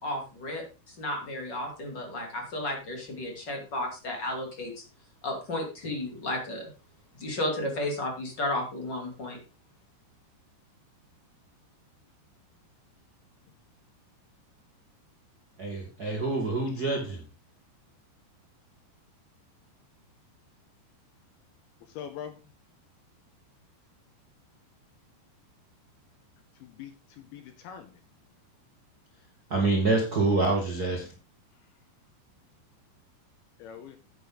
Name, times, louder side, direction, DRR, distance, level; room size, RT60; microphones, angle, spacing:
voice 1, 0.0-4.8 5.2-6.7 7.2-9.4, left 1 dB, 30° left, 2 dB, 2.7 m, -33 dB
voice 2, 15.6-17.2 29.5-31.1, right 3 dB, 65° right, 0 dB, 0.9 m, -26 dB
voice 3, 22.0-22.4 26.6-27.9 33.6-34.0, left 8 dB, 75° left, 8 dB, 2.5 m, -42 dB
9.7 x 9.3 x 3.7 m, 0.32 s
omnidirectional pair, 5.0 m